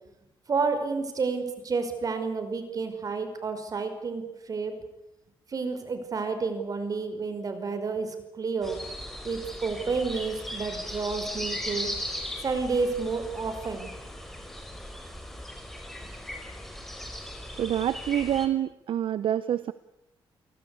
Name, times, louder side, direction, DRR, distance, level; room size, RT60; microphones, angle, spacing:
voice 1, 0.5-4.7 5.5-8.8 9.2-11.9 12.4-13.9, right 4 dB, 40° right, 8 dB, 5.2 m, -30 dB
sound 1, 8.6-18.5, left 1 dB, 5° left, 4.9 m, -38 dB
voice 2, 17.6-19.7, right 11 dB, 70° right, 15 dB, 0.9 m, -27 dB
30.0 x 18.5 x 8.5 m, 0.85 s
cardioid pair, 125°, 9 cm